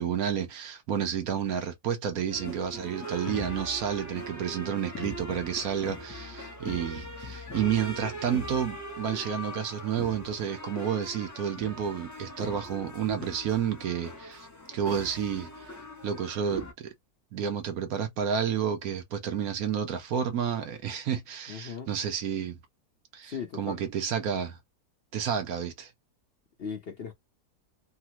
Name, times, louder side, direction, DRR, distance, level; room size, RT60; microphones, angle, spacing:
voice 1, 0.0-15.7 16.0-16.9 17.3-22.6 23.1-24.6 25.1-25.9, right 8 dB, 70° right, 1.2 m, -30 dB
sound 1, 2.3-16.7, equal, 20° left, 0.4 m, -41 dB
voice 2, 21.5-21.9 23.2-23.8 26.6-27.1, left 6 dB, 50° left, 0.8 m, -37 dB
3.4 x 2.1 x 2.9 m
omnidirectional pair, 1.7 m